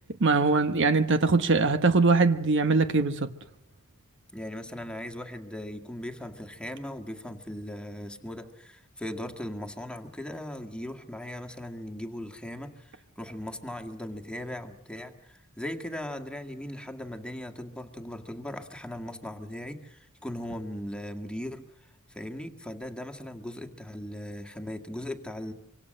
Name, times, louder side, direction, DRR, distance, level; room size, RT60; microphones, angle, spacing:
voice 1, 0.2-3.3, right 3 dB, 55° right, 1.2 m, -22 dB
voice 2, 4.3-21.7 22.1-25.5, left 1 dB, 5° left, 1.8 m, -38 dB
25.5 x 25.5 x 6.5 m
head